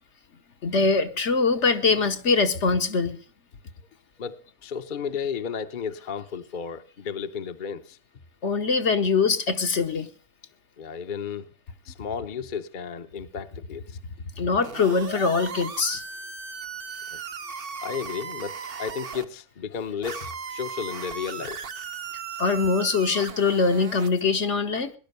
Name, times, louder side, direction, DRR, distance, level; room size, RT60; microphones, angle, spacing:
voice 1, 0.6-3.2 8.4-10.1 14.4-16.0 22.4-24.9, left 4 dB, 55° left, 1.3 m, -23 dB
voice 2, 4.2-8.0 10.8-11.5 11.8-14.0 17.1-17.2 17.8-21.6, left 7 dB, 40° left, 0.9 m, -33 dB
sound 1, 14.6-19.2 20.0-24.2, right 6 dB, 45° right, 1.0 m, -37 dB
18.5 x 11.5 x 6.7 m
omnidirectional pair, 1.5 m